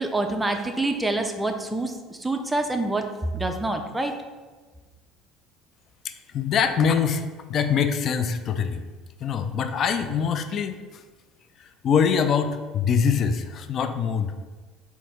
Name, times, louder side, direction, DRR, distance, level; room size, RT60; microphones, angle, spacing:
voice 1, 0.0-1.9 2.2-3.1 3.3-4.1, right 2 dB, 10° right, 5 dB, 0.5 m, -26 dB
voice 2, 6.0-8.8 9.2-11.0 11.6-14.3, left 6 dB, 45° left, 9 dB, 0.3 m, -24 dB
4.3 x 2.8 x 4.4 m, 1.3 s
supercardioid pair, 95°, 0 cm